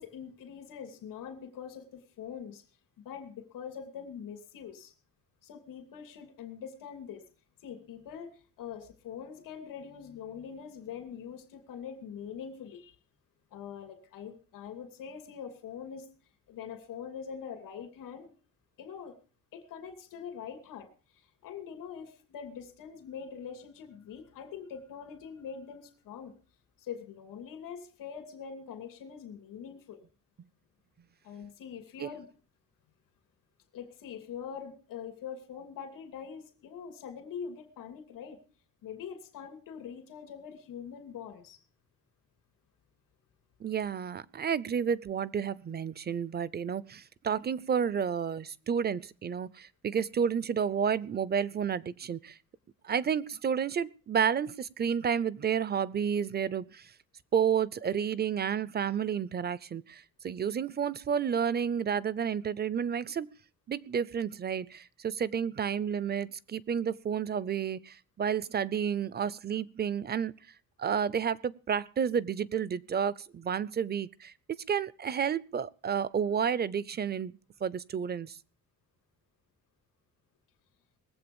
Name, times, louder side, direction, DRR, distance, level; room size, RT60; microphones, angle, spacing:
voice 1, 0.0-2.6 3.0-4.9 5.4-7.2 7.6-12.9 13.5-16.1 16.5-18.3 18.8-19.2 19.5-20.9 21.4-26.3 26.8-30.0 31.2-32.3 33.7-38.4 38.8-41.6, left 7 dB, 85° left, 2.8 m, -43 dB
voice 2, 43.6-52.4 52.8-56.9 57.3-63.3 63.7-70.3 70.8-74.3 74.7-78.4, right 7 dB, 30° right, 0.6 m, -31 dB
20.0 x 7.8 x 7.0 m
cardioid pair, 130°, 32 cm